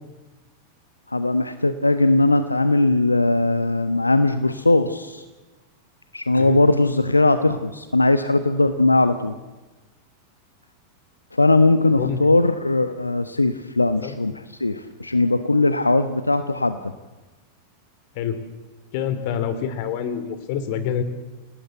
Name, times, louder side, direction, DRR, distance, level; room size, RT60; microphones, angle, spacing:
voice 1, 1.1-5.2 6.1-9.3 11.3-16.8, left 2 dB, 80° left, 11 dB, 1.0 m, -19 dB
voice 2, 11.9-12.2 14.0-14.2 18.1-18.4 18.9-21.0, left 8 dB, 50° left, 12 dB, 3.1 m, -26 dB
29.0 x 19.0 x 7.9 m, 1.2 s
figure-of-eight pair, 90°, 0 cm